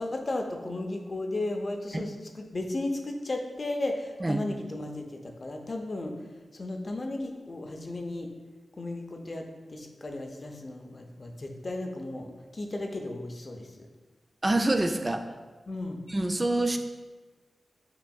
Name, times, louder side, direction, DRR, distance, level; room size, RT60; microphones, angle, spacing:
voice 1, 0.0-6.1 6.5-8.3 8.8-13.9 15.7-16.0, left 2 dB, 50° left, 3 dB, 0.6 m, -35 dB
voice 2, 14.4-15.2 16.1-16.8, right 2 dB, 30° right, 6 dB, 0.3 m, -26 dB
5.8 x 3.4 x 2.3 m, 1.3 s
cardioid pair, 45°, 0 cm